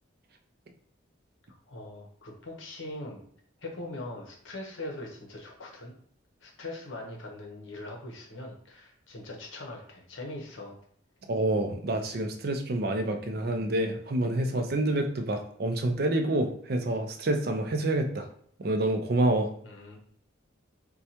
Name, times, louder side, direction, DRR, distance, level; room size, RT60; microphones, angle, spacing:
voice 1, 1.7-3.2 3.6-5.9 6.4-10.8 19.6-20.0, left 2 dB, 75° left, 1 dB, 0.8 m, -41 dB
voice 2, 11.3-18.3 18.6-19.5, right 1 dB, 50° right, 6 dB, 0.4 m, -27 dB
4.4 x 2.3 x 2.8 m, 0.63 s
head